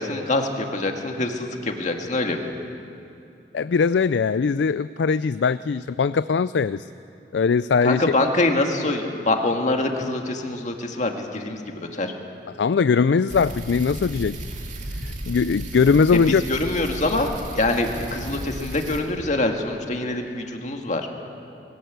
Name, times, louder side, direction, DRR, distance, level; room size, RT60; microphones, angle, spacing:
voice 1, 0.0-2.5 7.8-12.1 16.1-17.3 17.5-21.1, left 2 dB, 45° left, 3 dB, 1.9 m, -25 dB
voice 2, 3.5-6.8 7.3-8.0 12.6-14.4 15.3-16.4, left 5 dB, 75° left, 15 dB, 0.4 m, -20 dB
sound 1, 13.3-19.0, right 1 dB, 45° right, 2.4 m, -34 dB
21.0 x 18.0 x 8.2 m, 2.7 s
head